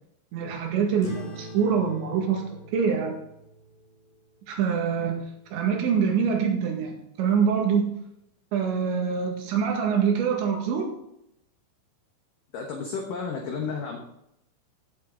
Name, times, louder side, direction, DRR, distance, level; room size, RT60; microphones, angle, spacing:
voice 1, 0.3-3.2 4.5-5.2 5.5-7.9 8.5-10.9, right 6 dB, 70° right, 1 dB, 4.1 m, -25 dB
sound 1, 1.0-5.9, right 1 dB, 60° left, 6.2 m, -45 dB
voice 2, 12.5-14.0, left 5 dB, 75° left, 1 dB, 2.0 m, -32 dB
16.0 x 7.6 x 3.9 m, 0.78 s
omnidirectional pair, 5.5 m